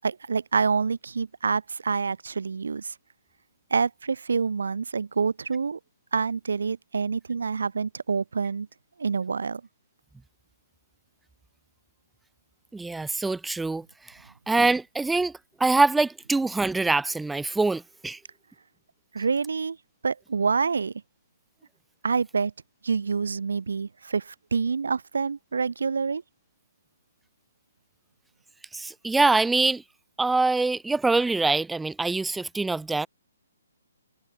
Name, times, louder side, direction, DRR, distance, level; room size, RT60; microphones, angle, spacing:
voice 1, 0.0-2.9 3.7-5.8 6.1-8.7 9.0-9.6 19.1-19.8 20.0-20.9 22.0-22.5 22.8-26.2, right 5 dB, 80° right, 2.7 m, -27 dB
voice 2, 12.7-13.8 14.5-15.3 15.6-18.2 28.7-29.8 30.2-33.1, right 3 dB, 5° right, 0.4 m, -24 dB
hypercardioid pair, 150°, 0 cm